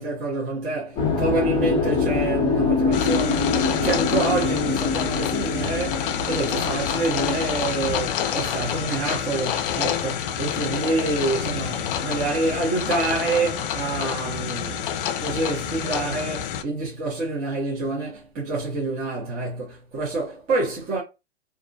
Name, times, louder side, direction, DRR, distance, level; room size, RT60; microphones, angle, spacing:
voice 1, 0.0-21.0, right 3 dB, 25° right, 0.8 m, -27 dB
sound 1, 1.0-11.1 11.3-13.0, left 4 dB, 15° left, 0.7 m, -26 dB
sound 2, 2.9-16.6, left 9 dB, 55° left, 0.4 m, -28 dB
2.4 x 2.1 x 2.6 m
hypercardioid pair, 130°, 33 cm